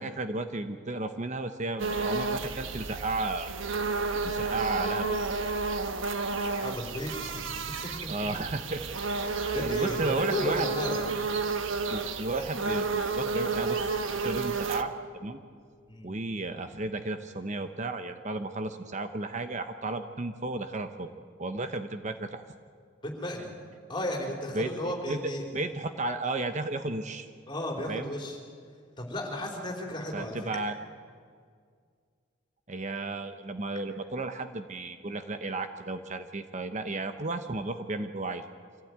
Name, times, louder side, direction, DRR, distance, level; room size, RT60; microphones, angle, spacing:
voice 1, 0.0-3.5 4.2-5.2 8.1-8.8 9.2-10.7 11.9-13.9 14.2-14.9 15.2-15.4 16.0-21.1 21.4-22.4 24.5-25.2 25.5-27.3 27.9-28.1 30.1-30.7 32.7-38.4, right 2 dB, 35° right, 8 dB, 0.9 m, -33 dB
sound 1, 1.8-14.8, right 4 dB, 75° right, 1.3 m, -31 dB
voice 2, 6.6-7.4 7.8-8.1 9.5-11.1 15.9-16.2 23.0-23.5 23.9-25.4 27.5-28.4 29.0-30.4, left 1 dB, 25° left, 1 dB, 4.0 m, -34 dB
25.5 x 15.5 x 9.4 m, 2.1 s
head